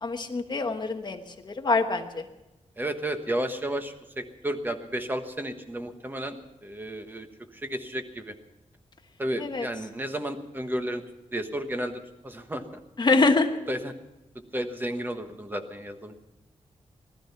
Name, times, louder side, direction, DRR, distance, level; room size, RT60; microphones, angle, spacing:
voice 1, 0.0-2.2 9.4-9.7 13.0-13.5, left 3 dB, 35° left, 5 dB, 1.2 m, -25 dB
voice 2, 2.8-6.4 6.6-7.3 7.5-8.4 9.2-11.0 11.3-12.6 13.7-13.9 14.5-16.1, right 1 dB, 15° right, 7 dB, 1.2 m, -32 dB
19.5 x 13.0 x 5.8 m, 1.0 s
wide cardioid pair, 180°, 13 cm